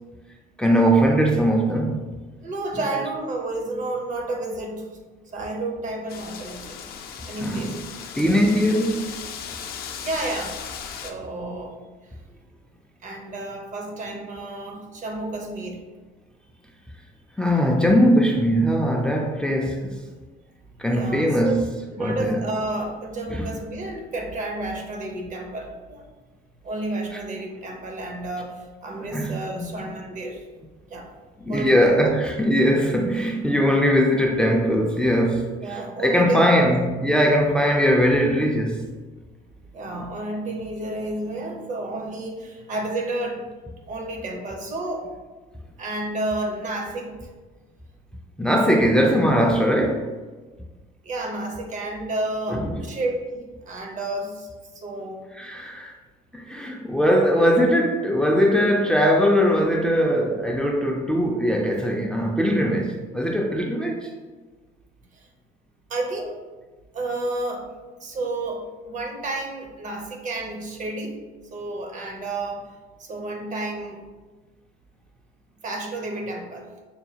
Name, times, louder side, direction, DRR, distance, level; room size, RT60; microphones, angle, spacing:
voice 1, 0.6-2.1 7.4-7.7 8.1-9.0 17.4-20.0 20.8-21.6 22.0-22.4 23.3-23.5 29.1-29.8 31.4-38.8 48.4-50.1 52.5-52.8 55.3-55.9 56.3-64.1, equal, 5° left, 0.4 m, -20 dB
voice 2, 2.4-4.9 5.3-6.8 7.3-7.8 10.0-10.6 10.9-11.7 12.0-12.1 13.0-15.8 20.9-21.6 21.9-26.1 26.6-30.4 30.8-31.1 31.5-31.9 35.6-36.7 39.7-43.5 43.9-45.1 45.8-47.3 51.0-55.3 65.1-65.3 65.9-66.4 66.9-67.7 68.0-71.2 71.5-72.7 73.0-74.0 75.6-76.7, right 2 dB, 50° right, 0.7 m, -31 dB
Wind, 6.1-11.1, left 7 dB, 65° left, 0.5 m, -37 dB
5.6 x 2.3 x 2.8 m
cardioid pair, 110°, 17 cm